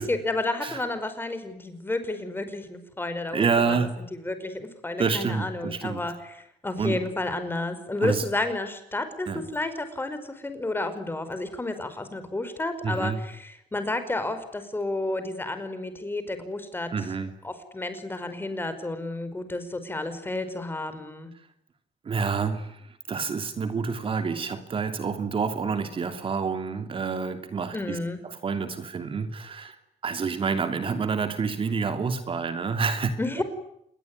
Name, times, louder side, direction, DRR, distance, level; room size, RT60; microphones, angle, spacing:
voice 1, 0.1-3.8 4.2-16.9 17.4-21.3 27.7-28.2 33.2-33.4, left 2 dB, 15° left, 10 dB, 5.3 m, -31 dB
voice 2, 3.3-4.0 5.0-6.0 6.8-7.0 8.0-8.2 9.3-9.4 12.8-13.2 16.9-17.3 22.0-22.8 23.1-28.0 28.2-29.8 30.0-33.1 33.4-33.5, right 5 dB, 40° right, 8 dB, 2.9 m, -28 dB
28.0 x 21.5 x 9.7 m, 0.75 s
cardioid pair, 115°, 14 cm